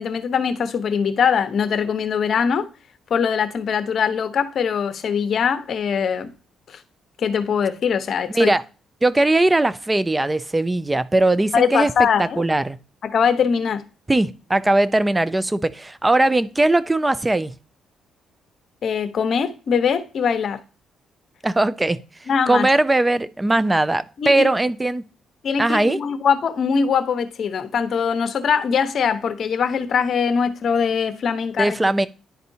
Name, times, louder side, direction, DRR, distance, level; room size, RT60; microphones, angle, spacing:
voice 1, 0.0-2.7 3.1-6.3 6.7-6.8 7.2-8.5 11.5-12.4 13.0-13.8 18.8-20.6 22.3-22.7 24.2-24.4 25.4-31.8, left 6 dB, 55° left, 0.9 m, -22 dB
voice 2, 9.0-11.9 12.2-12.8 14.1-17.5 21.4-22.0 22.5-25.0 25.6-26.0 31.6-32.1, right 2 dB, 15° right, 0.5 m, -19 dB
10.5 x 4.2 x 2.7 m
cardioid pair, 90°, 0 cm